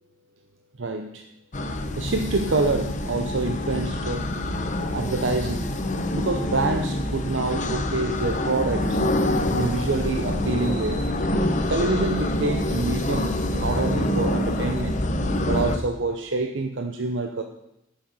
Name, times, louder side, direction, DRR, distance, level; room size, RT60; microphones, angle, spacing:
voice 1, 0.8-1.2 2.0-4.3 4.9-5.8 6.1-9.0 9.5-11.3 11.5-15.0 15.5-17.4, right 3 dB, 65° right, 6 dB, 0.7 m, -27 dB
sound 1, 1.5-15.8, left 1 dB, 40° left, 1.0 m, -26 dB
11.5 x 8.9 x 5.4 m, 0.83 s
head